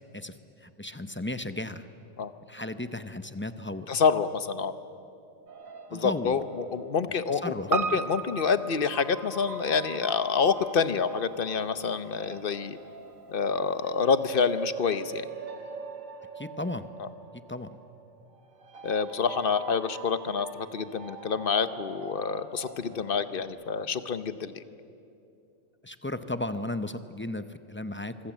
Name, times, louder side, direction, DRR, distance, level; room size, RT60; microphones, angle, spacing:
voice 1, 0.1-1.9 2.5-3.9 5.9-6.4 7.1-8.0 16.4-16.9 17.3-17.8 25.8-28.3, left 2 dB, 15° left, 10 dB, 0.4 m, -35 dB
voice 2, 3.9-4.7 5.9-12.8 13.3-15.3 17.0-17.1 18.8-24.6, left 6 dB, 45° left, 12 dB, 0.9 m, -27 dB
sound 1, 5.5-8.0 8.8-23.4, right 6 dB, 85° right, 1.8 m, -44 dB
Piano, 7.7-12.2 12.5-12.6, right 5 dB, 35° right, 0.7 m, -36 dB
25.0 x 23.5 x 7.4 m, 2.6 s
omnidirectional pair, 1.4 m